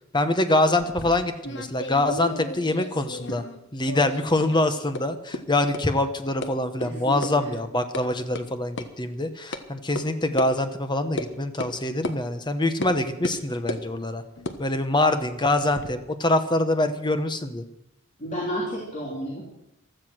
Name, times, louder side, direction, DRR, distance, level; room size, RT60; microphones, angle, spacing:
voice 1, 0.1-3.4 3.7-14.2 14.6-17.6, left 2 dB, 20° left, 9 dB, 1.2 m, -24 dB
sound 1, 0.8-3.6 3.8-4.6 4.9-5.0 5.3-5.4 5.7-5.8 6.4-6.5 6.8-6.9 7.2-7.3 7.6-8.0 8.4-8.5 8.8-8.9 9.5-9.6 10.0-10.1 10.4-10.5 11.2-11.3 11.6-11.7 12.0-12.2 12.8-12.9 13.2-13.9 14.4-15.9, left 2 dB, 55° left, 1.3 m, -34 dB
voice 2, 6.8-7.5 18.2-19.6, equal, 35° left, -2 dB, 3.2 m, -32 dB
15.5 x 13.0 x 6.3 m, 0.82 s
head